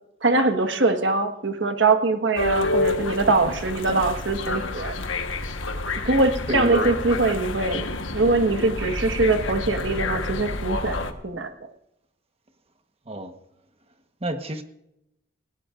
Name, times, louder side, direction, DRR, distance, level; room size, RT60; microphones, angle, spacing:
voice 1, 0.2-4.9 6.0-7.9 8.1-11.5, right 3 dB, 70° right, 7 dB, 1.5 m, -22 dB
sound 1, 2.4-11.1, left 2 dB, 85° left, 1.3 m, -28 dB
voice 2, 6.5-6.9 13.1-13.3 14.2-14.6, right 1 dB, 30° right, 7 dB, 1.2 m, -29 dB
20.5 x 17.5 x 2.5 m, 0.81 s
head